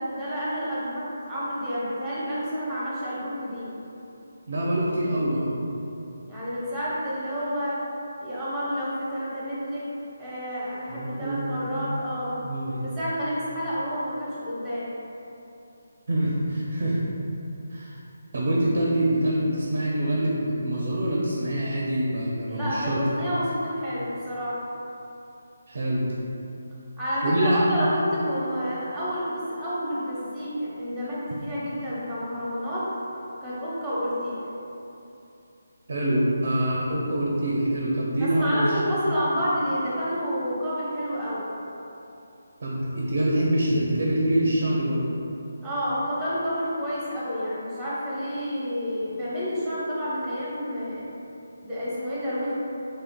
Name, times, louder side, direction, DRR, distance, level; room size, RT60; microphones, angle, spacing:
voice 1, 0.0-3.7 6.3-7.8 8.2-9.9 10.2-12.4 12.8-14.9 22.5-24.6 27.0-32.9 33.4-34.4 38.2-41.5 45.6-51.1 51.6-52.5, equal, 5° right, -10 dB, 0.9 m, -29 dB
voice 2, 4.5-5.5 10.9-11.9 12.4-12.8 16.1-17.0 17.7-17.9 18.3-23.2 25.7-26.0 27.2-27.8 35.9-38.8 42.6-45.1, right 1 dB, 50° right, -4 dB, 0.4 m, -25 dB
3.6 x 3.2 x 2.2 m, 2.8 s
figure-of-eight pair, 150°, 0 cm